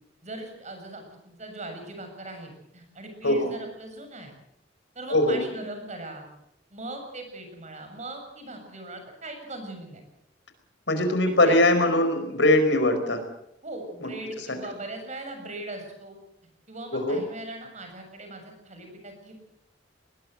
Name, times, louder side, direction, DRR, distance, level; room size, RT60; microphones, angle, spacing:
voice 1, 0.2-4.3 5.0-6.3 6.7-10.0 11.3-11.6 13.6-16.2 16.7-19.3, right 2 dB, 40° right, 5 dB, 7.2 m, -40 dB
voice 2, 5.1-5.5 10.9-13.2 14.0-14.1 14.5-14.6 16.9-17.2, left 1 dB, 70° left, 7 dB, 5.0 m, -21 dB
21.0 x 20.5 x 7.8 m, 0.81 s
head